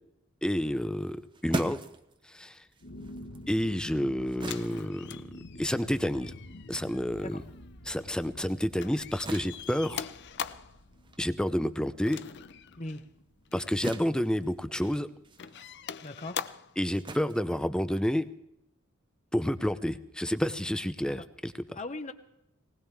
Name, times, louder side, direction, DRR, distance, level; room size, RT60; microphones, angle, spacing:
voice 1, 0.4-1.8 2.3-2.6 3.5-5.2 5.6-6.3 6.7-7.4 7.9-10.1 11.2-12.2 13.5-15.1 16.8-18.3 19.3-21.8, equal, 5° left, 12 dB, 0.6 m, -29 dB
sound 1, 1.0-7.8 8.1-18.4, right 2 dB, 25° right, 0.9 m, -44 dB
sound 2, 2.8-16.5, left 1 dB, 85° left, 1.4 m, -50 dB
sound 3, 4.4-8.5 8.8-10.8 12.1-13.0 13.5-13.7 14.4-15.0 15.4-16.8 18.0-18.1, left 8 dB, 55° left, 0.6 m, -43 dB
voice 2, 16.0-16.4 21.7-22.1, left 2 dB, 35° left, 9 dB, 1.1 m, -38 dB
19.5 x 19.5 x 3.5 m, 0.81 s
head